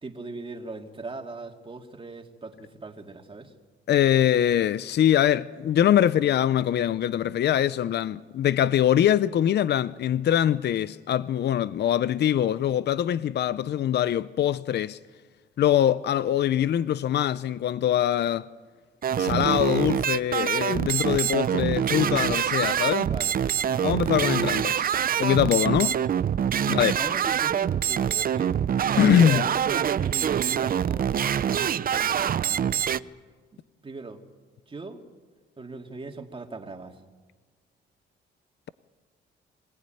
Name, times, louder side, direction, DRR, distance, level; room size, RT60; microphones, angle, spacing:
voice 1, 0.0-3.5 23.0-24.6 25.8-26.1 26.6-28.6 29.2-32.9 33.5-34.2 34.7-35.0 35.6-37.0, right 3 dB, 25° right, 2.5 m, -40 dB
voice 2, 3.9-15.0 15.6-18.5 19.2-23.1 23.8-24.9 25.2-25.9 26.7-27.0 29.0-29.4, left 10 dB, 55° left, 0.6 m, -23 dB
sound 1, 19.0-33.0, right 9 dB, 45° right, 0.6 m, -25 dB
25.0 x 18.0 x 9.3 m
cardioid pair, 90°, 20 cm